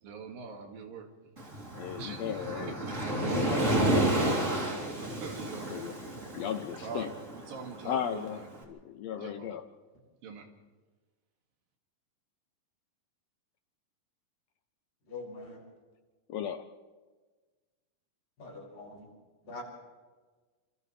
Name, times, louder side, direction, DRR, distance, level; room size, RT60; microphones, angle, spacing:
voice 1, 0.0-1.1 2.0-3.3 3.6-4.4 5.0-5.9 6.8-8.5 9.2-9.5 10.2-10.5, right 6 dB, 75° right, 2 dB, 4.0 m, -44 dB
Waves surf, 1.4-8.5, right 1 dB, 20° right, 3.3 m, -31 dB
voice 2, 1.8-2.8 3.3-4.0 5.7-5.9 6.4-7.1 7.8-9.6 16.3-16.6, left 9 dB, 90° left, 7 dB, 1.4 m, -36 dB
voice 3, 3.0-3.5 9.1-9.3 15.1-15.6 18.4-19.1 19.4-19.6, left 2 dB, 70° left, -5 dB, 9.3 m, -42 dB
28.0 x 28.0 x 3.4 m, 1.3 s
omnidirectional pair, 4.1 m